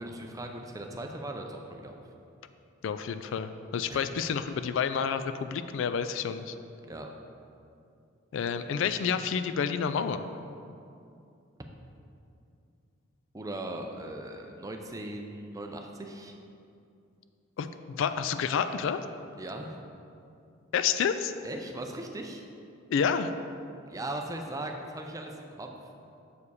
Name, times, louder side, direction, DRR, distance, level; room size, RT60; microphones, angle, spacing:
voice 1, 0.0-2.0 3.9-4.0 6.8-7.1 13.3-16.4 19.4-19.8 21.4-22.4 23.9-25.7, right 1 dB, 15° right, 3 dB, 0.5 m, -38 dB
voice 2, 2.8-6.6 8.3-10.2 17.6-19.0 20.7-21.3 22.9-23.3, left 7 dB, 65° left, 11 dB, 0.3 m, -29 dB
6.9 x 4.8 x 4.7 m, 2.5 s
head